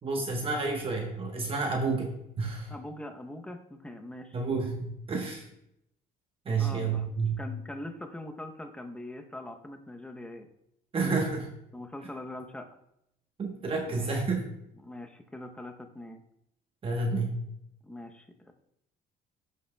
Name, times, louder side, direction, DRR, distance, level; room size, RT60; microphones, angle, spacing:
voice 1, 0.0-2.1 2.4-2.7 4.3-5.4 6.4-7.4 10.9-11.5 13.4-14.4 16.8-17.4, right 4 dB, 35° right, 1 dB, 1.0 m, -30 dB
voice 2, 2.7-4.4 6.6-7.1 7.4-10.5 11.7-12.7 13.9-14.1 14.8-16.2 17.8-18.5, left 1 dB, 5° left, 5 dB, 0.7 m, -42 dB
11.5 x 5.6 x 2.2 m, 0.79 s
cardioid pair, 110°, 17 cm